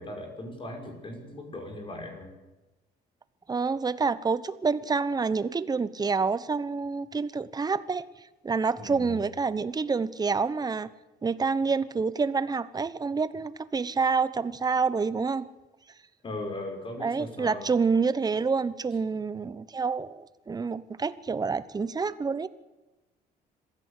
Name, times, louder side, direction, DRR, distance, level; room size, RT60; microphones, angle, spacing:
voice 1, 0.0-2.4 8.8-9.2 16.2-17.7, left 1 dB, 30° left, 4 dB, 5.8 m, -38 dB
voice 2, 3.5-8.1 8.4-10.9 11.2-15.5 17.0-22.5, right 4 dB, 25° right, 15 dB, 1.0 m, -28 dB
21.5 x 15.5 x 8.3 m, 1.1 s
cardioid pair, 110°, 17 cm